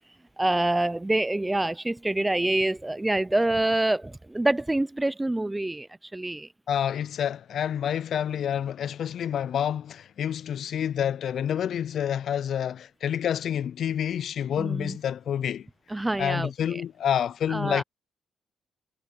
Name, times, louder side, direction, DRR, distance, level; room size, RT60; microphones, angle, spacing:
voice 1, 0.4-6.5 14.6-15.0 15.9-16.8 17.5-17.8, right 2 dB, 10° right, 0.5 m, -26 dB
voice 2, 6.7-15.7 16.2-17.8, left 9 dB, 60° left, 0.3 m, -28 dB
cardioid pair, 130°, 0 cm